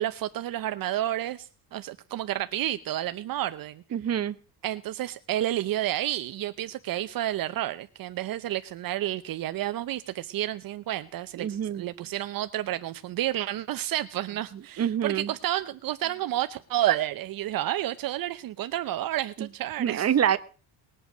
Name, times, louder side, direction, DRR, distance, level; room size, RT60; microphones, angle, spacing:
voice 1, 0.0-3.8 4.6-20.1, right 13 dB, 60° right, 11 dB, 0.8 m, -30 dB
voice 2, 3.9-4.4 11.4-11.8 14.8-15.3 19.4-19.5 19.8-20.4, right 9 dB, 40° right, 12 dB, 1.0 m, -26 dB
20.0 x 7.9 x 6.1 m, 0.37 s
cardioid pair, 115°, 38 cm